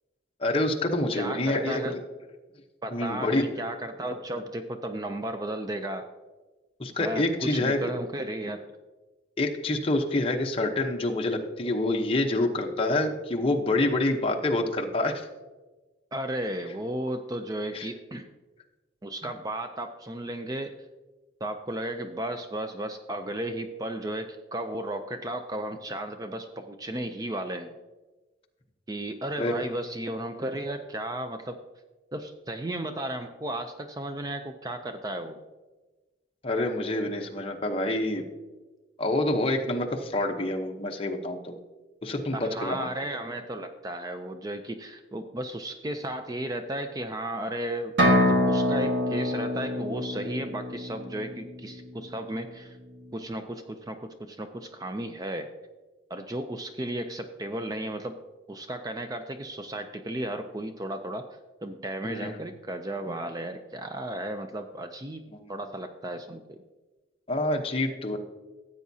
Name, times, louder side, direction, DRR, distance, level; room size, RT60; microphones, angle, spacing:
voice 1, 0.4-1.9 2.9-3.5 6.8-7.9 9.4-15.3 17.7-17.9 29.4-29.6 36.4-38.3 39.0-41.5 42.0-42.9 62.0-62.4 65.3-65.5 67.3-68.2, left 2 dB, 30° left, 2 dB, 0.9 m, -27 dB
voice 2, 1.1-2.0 2.8-6.1 7.0-8.7 16.1-18.3 19.0-20.7 21.4-27.8 28.9-31.6 32.1-35.4 42.3-52.8 53.1-55.5 56.1-58.2 58.5-61.3 61.6-65.2 65.5-66.6, right 1 dB, 20° right, 7 dB, 0.4 m, -34 dB
sound 1, 48.0-51.7, left 1 dB, 80° right, 1.7 m, -25 dB
15.0 x 8.2 x 2.7 m, 1.2 s
head